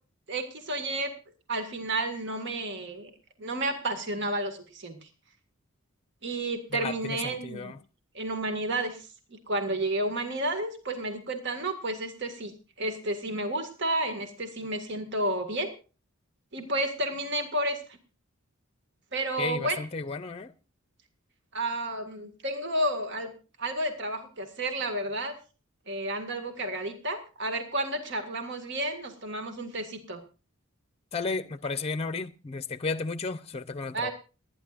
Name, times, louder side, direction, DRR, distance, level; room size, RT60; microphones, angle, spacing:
voice 1, 0.3-1.1 1.5-3.1 3.4-5.1 6.2-7.7 8.1-12.5 12.8-15.7 16.5-18.0 19.1-19.8 21.5-23.3 23.6-25.3 25.9-30.2 33.9-34.1, right 1 dB, 55° right, 2.0 m, -31 dB
voice 2, 6.7-7.8 19.4-20.5 31.1-34.1, left 4 dB, 30° left, 0.6 m, -33 dB
29.5 x 10.5 x 2.5 m
head